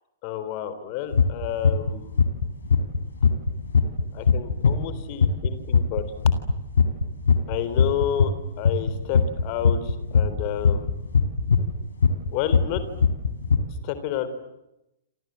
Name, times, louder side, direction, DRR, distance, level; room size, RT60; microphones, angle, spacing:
voice 1, 0.2-2.1 4.1-6.0 7.5-8.3 8.6-10.9 12.3-12.8 13.8-14.3, left 10 dB, 35° left, 12 dB, 3.6 m, -30 dB
sound 1, 1.1-1.3 1.6-1.9 2.2-8.4 8.7-13.6, left 6 dB, 65° left, 3.5 m, -19 dB
28.5 x 27.5 x 7.6 m, 0.91 s
figure-of-eight pair, 110°, 0 cm